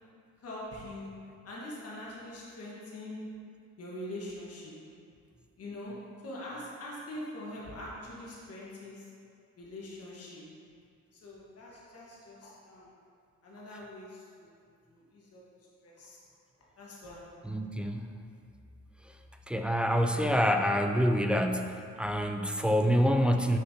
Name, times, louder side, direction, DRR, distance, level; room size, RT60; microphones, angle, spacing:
voice 1, 0.4-1.1 1.4-3.2 3.8-4.7 5.6-5.9 6.2-9.0 9.6-10.4 11.2-12.9 13.4-14.5 14.9-15.4 15.8-16.2 16.8-17.6, left 1 dB, 50° left, -5 dB, 1.4 m, -43 dB
voice 2, 17.4-18.1 19.5-23.6, equal, 5° right, 4 dB, 0.3 m, -27 dB
6.5 x 5.5 x 2.7 m, 2.3 s
cardioid pair, 90°, 30 cm